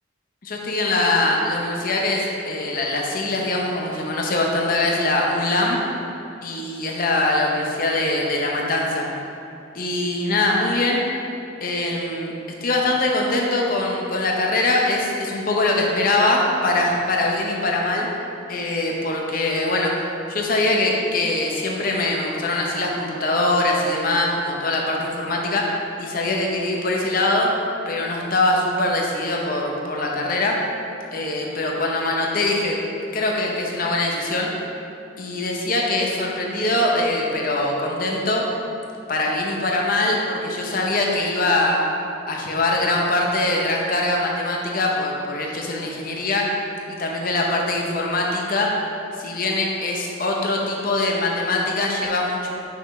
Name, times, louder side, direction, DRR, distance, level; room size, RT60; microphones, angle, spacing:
voice 1, 0.4-5.8 6.4-9.1 9.7-11.0 11.6-12.3 12.6-18.1 18.5-19.9 20.3-27.5 27.9-30.6 31.1-32.8 33.1-34.5 35.2-38.4 39.1-41.8 42.3-46.5 46.9-48.7 49.2-52.5, left 2 dB, 45° left, -1 dB, 0.7 m, -22 dB
6.0 x 5.9 x 3.1 m, 2.6 s
head